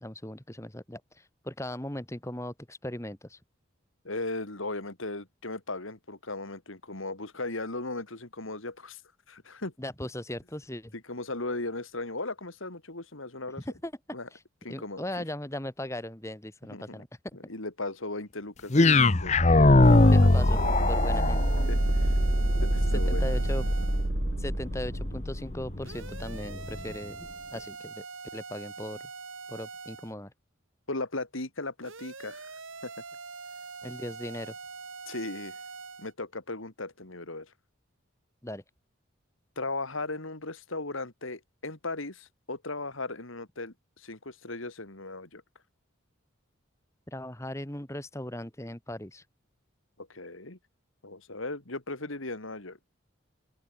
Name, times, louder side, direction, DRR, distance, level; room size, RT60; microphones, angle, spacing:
voice 1, 0.0-3.4 9.8-10.9 13.7-13.9 14.3-14.4 14.7-17.1 20.0-21.4 22.9-23.7 24.4-27.2 27.5-28.1 28.3-29.0 29.5-30.3 33.8-34.6 38.4-38.6 47.1-49.2, left 1 dB, 15° left, 1.6 m, -38 dB
voice 2, 4.0-9.0 9.3-9.7 11.1-13.6 14.1-14.3 14.6-15.0 16.7-17.0 17.5-20.3 21.7-22.2 22.6-23.4 30.9-32.5 32.8-32.9 35.1-35.6 36.0-37.5 39.6-45.4 50.0-50.6 51.0-52.8, left 2 dB, 75° left, 3.0 m, -37 dB
sound 1, 18.7-26.9, left 2 dB, 35° left, 0.8 m, -23 dB
sound 2, 19.2-25.9, right 1 dB, 55° right, 1.7 m, -28 dB
sound 3, 19.8-24.1 25.8-30.1 31.8-36.1, right 4 dB, 70° right, 3.2 m, -43 dB
open air
head